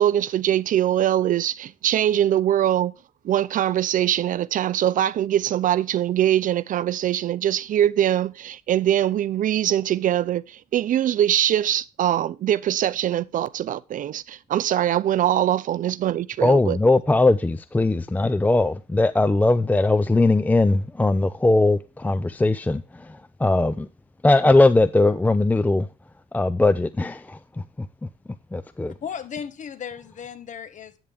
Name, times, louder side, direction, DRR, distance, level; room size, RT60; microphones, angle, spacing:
voice 1, 0.0-2.9 3.2-16.8, right 11 dB, 50° right, 0.5 m, -22 dB
voice 2, 16.4-23.9 24.2-25.9 26.3-27.4 27.8-27.9 28.5-28.9, left 2 dB, 10° left, 0.5 m, -20 dB
voice 3, 28.9-31.0, left 7 dB, 45° left, 1.5 m, -36 dB
10.5 x 9.0 x 3.5 m
cardioid pair, 110°, 17 cm